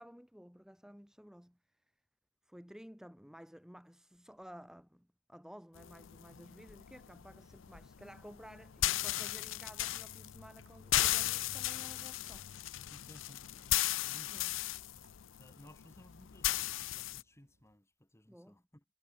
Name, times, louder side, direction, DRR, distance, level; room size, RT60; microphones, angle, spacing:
voice 1, 0.0-1.6 2.4-12.5 14.3-14.6 18.3-18.6, equal, 5° right, 2.3 m, -54 dB
sound 1, 5.8-17.2, left 14 dB, 70° left, 0.6 m, -36 dB
sound 2, 8.7-17.8, right 3 dB, 65° right, 5.8 m, -74 dB
voice 2, 12.9-13.8 14.1-14.5 15.4-18.8, left 1 dB, 15° left, 2.0 m, -59 dB
head